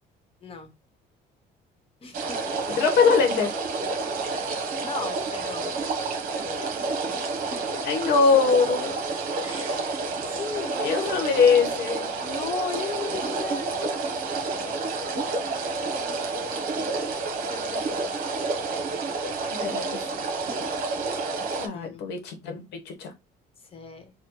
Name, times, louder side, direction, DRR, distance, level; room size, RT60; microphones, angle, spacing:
voice 1, 0.4-0.7 2.0-2.4 4.7-5.8 6.3-7.8 9.4-10.1 10.3-11.2 12.2-18.1 21.7-22.0 23.7-24.1, left 4 dB, 35° left, 1.0 m, -38 dB
sound 1, 2.1-21.7, right 3 dB, 60° right, 0.9 m, -29 dB
voice 2, 2.7-3.5 7.8-9.0 10.8-12.1 19.5-20.0 21.6-23.1, left 5 dB, 85° left, 1.1 m, -22 dB
4.8 x 2.2 x 2.9 m
cardioid pair, 110°, 17 cm